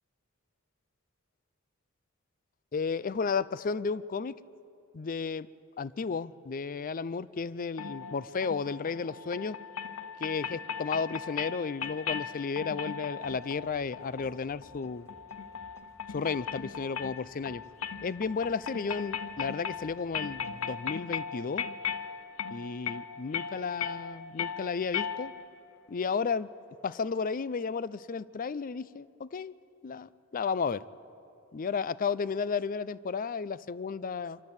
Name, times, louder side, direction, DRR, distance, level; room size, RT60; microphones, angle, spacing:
voice 1, 2.7-4.3 4.9-5.5 5.8-9.6 10.2-15.1 16.1-17.6 18.0-21.7 22.5-25.3 25.9-26.5 26.8-29.5 29.8-30.8 31.5-34.4, left 5 dB, 40° left, 19 dB, 0.4 m, -33 dB
sound 1, 7.8-25.6, left 7 dB, 85° left, 0.7 m, -38 dB
sound 2, 13.2-20.7, left 1 dB, 15° left, 1.2 m, -61 dB
25.0 x 13.5 x 8.2 m, 2.7 s
head